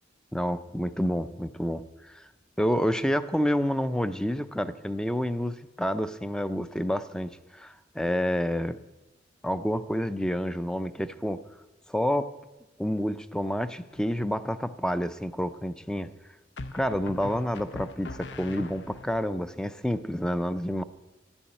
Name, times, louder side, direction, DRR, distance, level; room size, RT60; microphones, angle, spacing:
voice 1, 0.3-2.3 2.6-8.8 9.4-11.4 11.9-12.3 12.8-16.1 16.7-20.8, equal, 5° left, 12 dB, 0.4 m, -29 dB
sound 1, 13.9-14.5 16.6-19.2, left 2 dB, 70° left, 0.8 m, -41 dB
11.5 x 7.2 x 9.7 m, 1.1 s
head